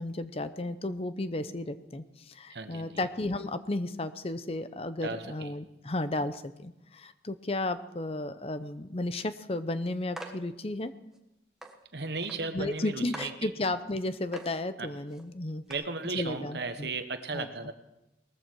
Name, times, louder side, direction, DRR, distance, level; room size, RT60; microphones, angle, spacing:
voice 1, 0.0-10.9 12.5-15.6 16.1-16.9 17.3-17.5, left 2 dB, 35° left, 12 dB, 0.7 m, -33 dB
voice 2, 2.5-3.1 5.0-5.5 11.9-13.5 14.8-14.9 15.7-17.7, right 3 dB, 70° right, 8 dB, 1.3 m, -36 dB
sound 1, 10.2-10.4 11.1-11.2 11.6-11.7 12.2-12.4 12.8-12.9 13.1-13.4 13.9-14.0 14.3-14.6 15.1-15.2 15.7-15.8, right 1 dB, 5° right, 1.4 m, -42 dB
19.5 x 14.0 x 4.6 m, 0.91 s
head